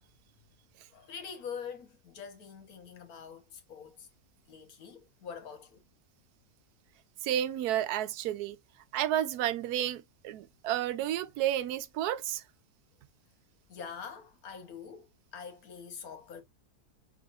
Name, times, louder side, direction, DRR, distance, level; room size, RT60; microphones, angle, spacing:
voice 1, 0.9-4.1 4.5-5.8 13.7-16.4, left 6 dB, 70° left, 1.5 m, -45 dB
voice 2, 7.2-8.6 8.9-12.4, right 12 dB, 80° right, 1.1 m, -31 dB
4.7 x 3.7 x 2.4 m
omnidirectional pair, 1.6 m